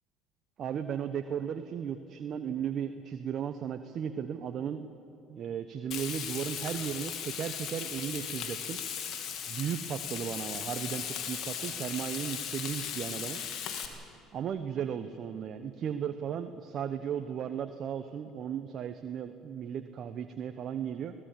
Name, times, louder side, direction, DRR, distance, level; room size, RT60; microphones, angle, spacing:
voice 1, 0.6-4.9 5.3-8.8 9.5-13.4 14.3-21.1, right 8 dB, 50° right, 9 dB, 1.0 m, -35 dB
Frying (food), 5.9-13.9, left 8 dB, 60° left, 2.7 m, -37 dB
25.0 x 18.0 x 7.6 m, 2.8 s
hypercardioid pair, 75°, 0 cm